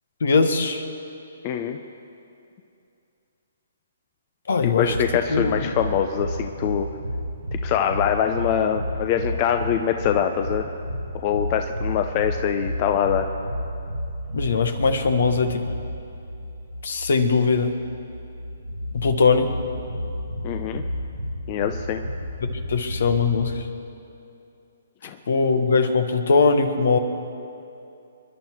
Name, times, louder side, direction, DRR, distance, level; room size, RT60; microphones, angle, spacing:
voice 1, 0.2-0.8 4.5-4.9 5.3-5.7 14.3-15.6 16.8-17.7 18.9-19.5 22.4-23.7 25.3-27.0, left 4 dB, 65° left, 8 dB, 1.5 m, -21 dB
voice 2, 1.4-1.8 4.6-6.9 7.6-10.6 11.2-13.3 20.4-20.8 21.5-22.0 25.0-25.2, left 9 dB, 35° left, 7 dB, 0.7 m, -24 dB
sound 1, 4.9-23.5, equal, 80° right, 1.4 m, -32 dB
27.5 x 11.5 x 4.6 m, 2.7 s
figure-of-eight pair, 130°, 0 cm